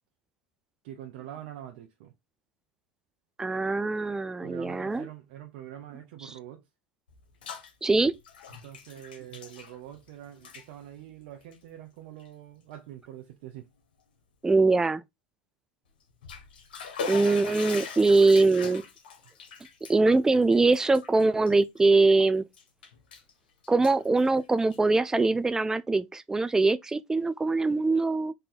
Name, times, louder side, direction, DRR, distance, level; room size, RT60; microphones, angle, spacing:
voice 1, 0.8-2.1 4.4-6.6 8.6-13.7, right 11 dB, 65° right, 0.7 m, -44 dB
voice 2, 3.4-5.1 6.2-6.3 7.8-8.1 14.4-15.0 17.1-18.8 19.9-22.4 23.7-28.3, right 3 dB, 10° right, 0.4 m, -23 dB
Bathtub (filling or washing), 7.1-7.7 8.0-10.1 10.4-10.7 11.4-11.6 12.2-12.3 12.7-12.8 16.0-22.1 22.5-23.3 23.6-25.0, left 5 dB, 80° left, 1.1 m, -41 dB
3.9 x 2.7 x 3.9 m
hypercardioid pair, 100°, 5 cm